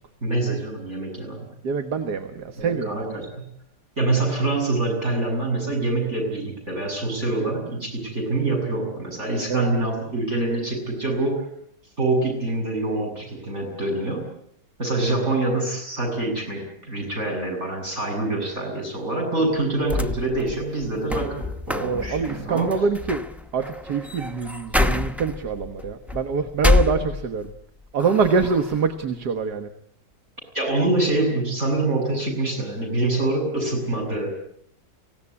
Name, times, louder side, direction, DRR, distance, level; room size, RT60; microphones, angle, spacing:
voice 1, 0.2-1.5 2.5-3.5 4.0-11.5 12.0-14.3 14.8-22.7 30.5-34.4, right 2 dB, 40° right, 4 dB, 8.1 m, -25 dB
voice 2, 1.6-3.0 9.5-9.7 21.8-23.2 23.5-27.5 27.9-29.7, right 5 dB, 70° right, 8 dB, 1.9 m, -24 dB
sound 1, 19.8-27.6 28.0-28.8, left 3 dB, ahead, 0.4 m, -27 dB
24.5 x 17.5 x 9.7 m, 0.70 s
omnidirectional pair, 1.8 m